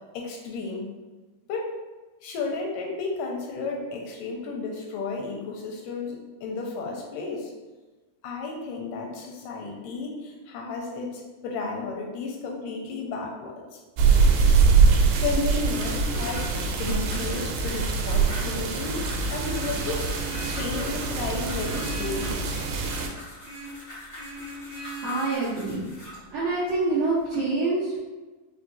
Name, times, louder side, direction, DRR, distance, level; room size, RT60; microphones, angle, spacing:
voice 1, 0.1-0.9 1.5-1.7 2.2-7.5 8.2-13.8 15.2-20.1 20.6-22.4, left 3 dB, 85° left, 0 dB, 2.2 m, -33 dB
sound 1, 14.0-23.1, right 5 dB, 85° right, 2.2 m, -23 dB
sound 2, 15.6-26.3 26.9-27.3, left 1 dB, 45° left, 0.9 m, -42 dB
Vehicle horn car horn honking, 19.4-20.8 21.5-23.1 23.4-23.8 24.1-25.4, right 2 dB, 45° right, 1.3 m, -40 dB
voice 2, 25.0-25.8 26.3-28.0, right 3 dB, 70° right, -10 dB, 1.5 m, -26 dB
5.3 x 2.4 x 2.7 m, 1.2 s
omnidirectional pair, 3.8 m